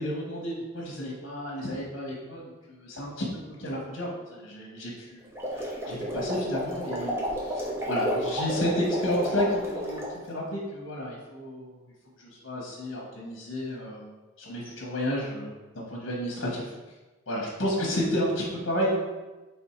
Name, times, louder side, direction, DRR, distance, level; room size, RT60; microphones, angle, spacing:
voice 1, 0.0-11.8 12.2-14.0 14.4-15.5 15.7-16.7 17.3-19.0, equal, 70° left, -3 dB, 0.9 m, -32 dB
sound 1, 5.2-10.2, equal, 15° right, 0.7 m, -31 dB
3.4 x 3.4 x 4.3 m, 1.2 s
head